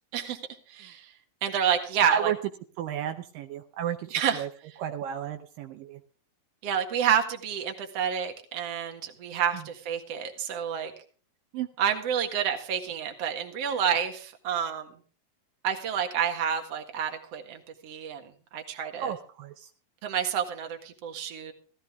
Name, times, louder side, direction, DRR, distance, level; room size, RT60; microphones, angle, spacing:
voice 1, 0.7-1.1 1.4-2.3 4.1-4.5 6.6-10.9 11.8-14.9 15.6-19.1 20.0-21.5, right 8 dB, 50° right, 4 dB, 2.4 m, -29 dB
voice 2, 2.8-4.1 4.3-4.5 4.8-6.0 11.5-11.7 13.7-13.8 19.0-19.7, right 9 dB, 75° right, 6 dB, 2.4 m, -32 dB
16.0 x 14.5 x 3.6 m, 0.40 s
omnidirectional pair, 4.2 m